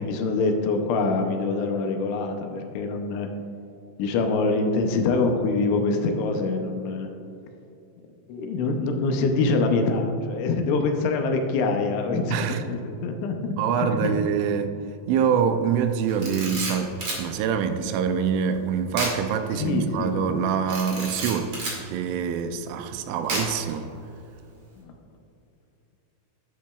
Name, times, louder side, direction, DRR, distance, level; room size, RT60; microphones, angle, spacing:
voice 1, 0.0-3.3 4.0-7.1 8.3-12.4 12.7-13.5 13.8-14.2 19.5-20.1 24.8-24.9, left 3 dB, 80° left, 4 dB, 3.1 m, -25 dB
voice 2, 12.3-12.6 13.6-14.7 15.1-23.9, right 7 dB, 85° right, 8 dB, 3.0 m, -25 dB
Camera, 16.1-17.2 18.9-19.2 19.5-19.7 20.7-21.8 23.3-23.7, right 2 dB, 45° right, 2.1 m, -30 dB
10.5 x 10.0 x 2.4 m, 2.7 s
omnidirectional pair, 5.5 m